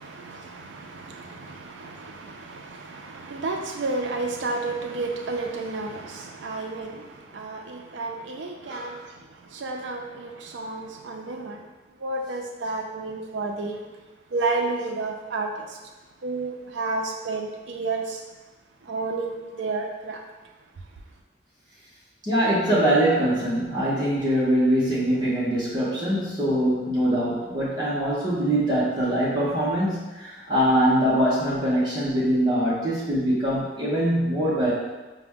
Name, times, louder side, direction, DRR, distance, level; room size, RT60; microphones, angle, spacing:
voice 1, 0.0-11.7 12.0-13.8 14.3-15.8 16.2-18.2 18.8-20.3 20.8-20.9, right 3 dB, 75° right, 2 dB, 0.4 m, -31 dB
voice 2, 8.6-9.0 22.3-34.7, right 1 dB, 25° right, -9 dB, 0.7 m, -23 dB
5.7 x 2.1 x 3.5 m, 1.2 s
head